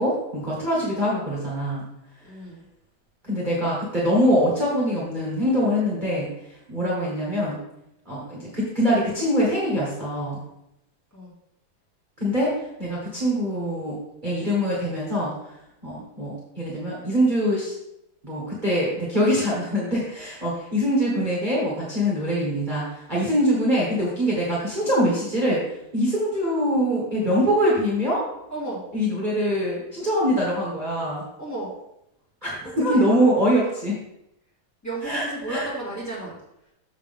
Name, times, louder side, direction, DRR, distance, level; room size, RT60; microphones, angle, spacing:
voice 1, 0.0-1.8 3.2-6.3 6.7-7.6 8.0-10.4 12.2-15.3 15.8-17.7 18.2-25.6 25.9-28.2 28.9-31.2 32.4-33.9 35.0-35.6, equal, 60° right, -6 dB, 0.5 m, -23 dB
voice 2, 2.2-2.6 11.1-11.3 28.5-28.8 31.4-31.7 32.6-33.0 34.8-36.4, right 2 dB, 5° left, -8 dB, 1.6 m, -33 dB
6.9 x 6.6 x 3.6 m, 0.83 s
omnidirectional pair, 4.4 m